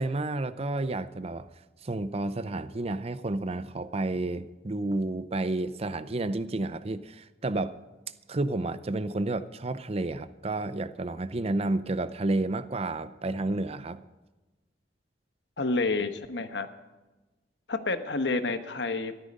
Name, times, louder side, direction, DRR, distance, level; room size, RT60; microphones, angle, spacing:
voice 1, 0.0-1.5 1.8-7.8 8.3-14.0, right 2 dB, 35° right, 0.6 m, -31 dB
voice 2, 15.6-16.7 17.7-19.1, left 3 dB, 80° left, 1.1 m, -29 dB
14.0 x 12.5 x 5.3 m
head